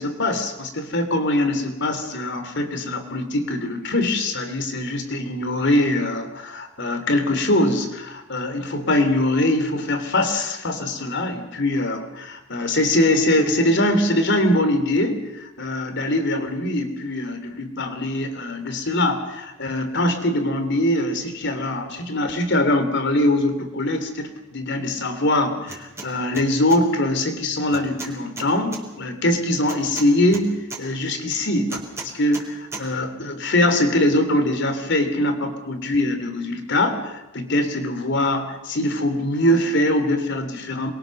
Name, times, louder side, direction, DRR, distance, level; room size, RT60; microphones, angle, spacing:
voice 1, 0.0-40.9, left 1 dB, 60° left, 8 dB, 3.4 m, -22 dB
sound 1, 25.7-26.1 26.3-26.8 27.7-28.8 29.7-30.8 31.7-32.5 32.7-32.8, right 3 dB, 15° right, 4.3 m, -35 dB
27.5 x 22.5 x 6.7 m, 0.99 s
head